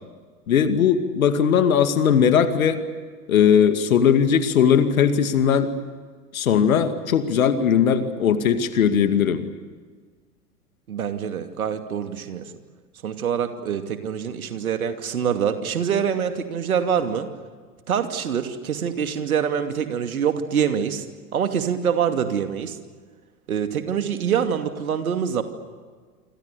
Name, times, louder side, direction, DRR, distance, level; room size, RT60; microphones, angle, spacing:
voice 1, 0.5-2.8 3.3-5.7 6.3-9.4, left 8 dB, 60° left, 9 dB, 2.4 m, -19 dB
voice 2, 10.9-12.5 13.0-17.3 17.9-21.0 21.3-22.8 23.5-25.4, right 8 dB, 65° right, 7 dB, 2.6 m, -25 dB
28.0 x 26.0 x 6.9 m, 1.5 s
figure-of-eight pair, 95°, 46 cm